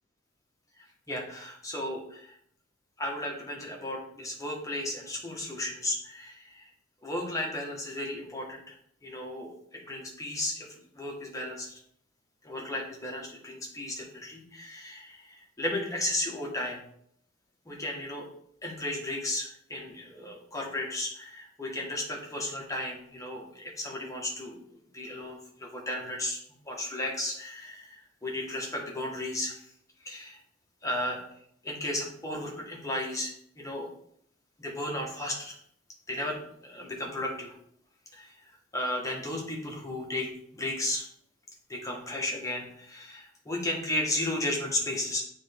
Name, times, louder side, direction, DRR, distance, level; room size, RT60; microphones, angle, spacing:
voice 1, 0.8-2.3 3.0-6.7 7.0-8.7 9.0-11.7 12.4-16.8 17.6-18.3 18.6-26.4 26.6-29.6 30.0-30.4 30.8-31.2 31.6-33.9 34.6-35.5 36.1-37.5 38.1-38.3 38.7-41.1 41.7-45.2, left 1 dB, 15° left, -1 dB, 1.4 m, -34 dB
9.0 x 3.4 x 3.5 m, 0.66 s
head